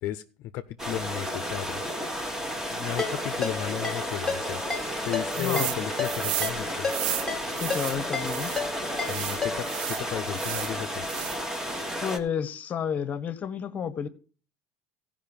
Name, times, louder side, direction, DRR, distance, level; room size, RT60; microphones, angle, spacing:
voice 1, 0.0-1.8 2.5-4.6 5.0-7.0 9.0-11.1, left 13 dB, 60° left, 0.5 m, -34 dB
sound 1, 0.8-12.2, equal, 10° right, 1.2 m, -33 dB
Ringtone, 3.0-9.9, left 4 dB, 10° left, 1.5 m, -34 dB
sound 2, 5.3-5.8 6.0-8.6 9.0-10.7 11.0-11.6, right 14 dB, 85° right, 0.4 m, -33 dB
voice 2, 5.4-5.8 7.6-8.5 12.0-14.1, left 7 dB, 35° left, 0.9 m, -31 dB
15.0 x 5.2 x 5.2 m
supercardioid pair, 120°, 5 cm